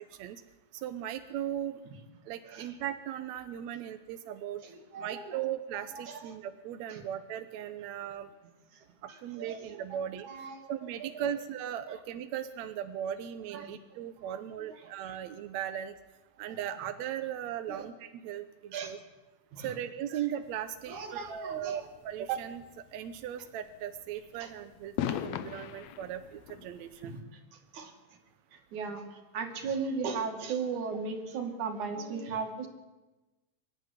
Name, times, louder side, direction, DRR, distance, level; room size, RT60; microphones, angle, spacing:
voice 1, 0.7-1.8 2.3-4.6 5.0-8.3 9.0-10.3 10.7-15.9 16.4-19.0 19.6-22.6 22.9-27.2, right 10 dB, 75° right, 8 dB, 2.1 m, -38 dB
voice 2, 4.6-5.4 5.9-6.4 6.9-7.0 9.1-10.0 10.2-11.3 13.5-13.8 14.3-14.4 15.0-15.2 17.7-17.9 18.7-19.0 19.5-19.7 20.1-20.2 20.9-21.9 24.4-24.5 27.0-27.2 27.5-27.9 28.5-32.7, right 5 dB, 90° right, 4 dB, 3.7 m, -37 dB
sound 1, 20.4-27.2, left 10 dB, 75° left, 2.0 m, -41 dB
24.5 x 12.0 x 9.8 m, 1.1 s
omnidirectional pair, 3.3 m